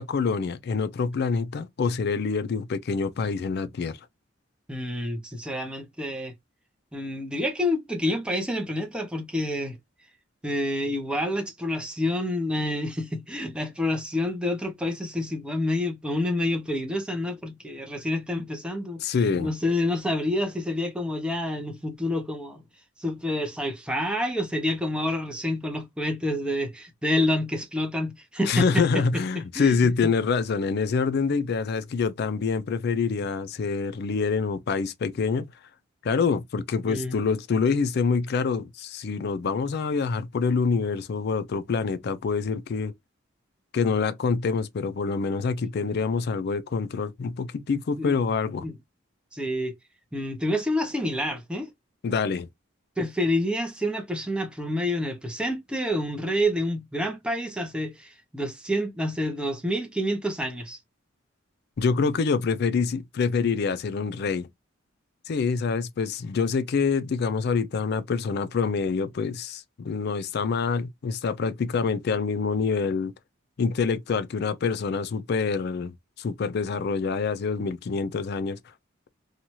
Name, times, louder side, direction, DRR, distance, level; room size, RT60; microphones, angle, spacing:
voice 1, 0.0-4.0 19.0-19.5 28.5-35.5 36.0-42.9 43.7-48.6 52.0-52.5 61.8-64.5 65.3-73.1 73.6-75.9 76.2-78.6, left 5 dB, 50° left, 0.4 m, -26 dB
voice 2, 4.7-6.3 6.9-9.8 10.4-22.6 23.0-29.8 30.0-30.1 36.8-37.2 48.0-48.2 48.6-48.8 49.3-49.7 50.1-51.7 53.0-60.8, left 1 dB, 5° right, 0.6 m, -28 dB
2.8 x 2.3 x 2.9 m
head